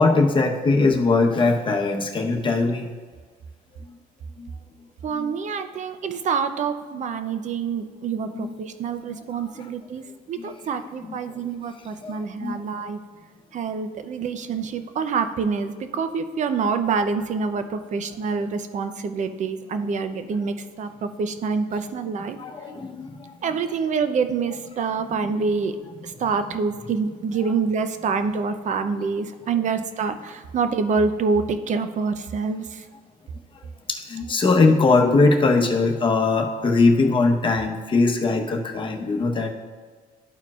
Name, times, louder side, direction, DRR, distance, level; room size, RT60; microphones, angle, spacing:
voice 1, 0.0-2.9 4.4-4.5 5.2-5.3 8.3-8.5 9.1-9.2 10.4-10.5 11.1-11.3 12.0-12.6 22.4-23.3 33.9-39.5, left 3 dB, 30° left, 2 dB, 1.0 m, -21 dB
voice 2, 5.0-13.0 13.5-22.4 23.4-25.8 26.0-32.9, right 5 dB, 45° right, 9 dB, 0.6 m, -26 dB
13.0 x 4.5 x 2.4 m, 1.5 s
cardioid pair, 110°, 17 cm